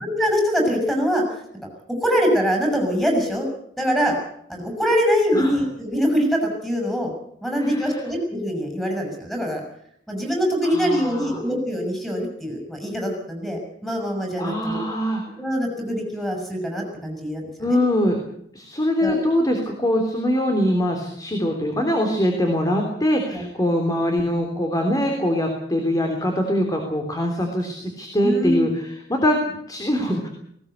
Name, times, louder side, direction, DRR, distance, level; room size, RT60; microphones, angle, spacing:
voice 1, 0.0-1.4 2.0-3.5 3.8-4.2 4.5-7.1 7.4-9.6 10.1-14.8 15.4-17.8 19.0-19.2 23.3-23.4 28.2-28.7, equal, ahead, 1 dB, 7.1 m, -23 dB
voice 2, 7.6-8.0 10.6-11.4 14.4-15.2 17.6-18.2 18.5-28.7 29.1-30.3, equal, 20° left, 3 dB, 3.3 m, -23 dB
19.5 x 18.5 x 8.2 m, 0.69 s
head